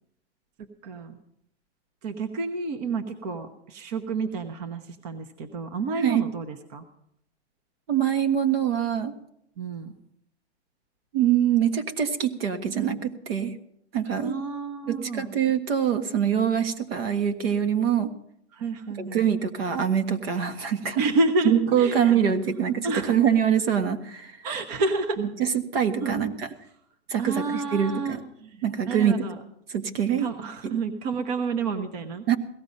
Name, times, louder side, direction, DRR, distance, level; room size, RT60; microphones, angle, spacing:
voice 1, 0.8-1.2 2.0-6.8 9.6-9.9 14.2-15.3 18.5-19.2 21.0-22.2 22.5-22.6 22.8-23.1 24.4-25.2 26.0-26.2 27.2-29.4 30.2-32.3, right 3 dB, 35° right, 7 dB, 1.1 m, -30 dB
voice 2, 7.9-9.1 11.1-13.5 13.9-14.3 14.9-18.1 19.0-21.0 21.4-24.3 25.2-25.5 25.7-26.5 27.1-28.2 28.6-29.2 29.7-30.3 30.6-30.8 32.3-32.4, right 9 dB, 60° right, 9 dB, 1.5 m, -24 dB
17.5 x 14.0 x 5.3 m, 0.75 s
hypercardioid pair, 165°, 34 cm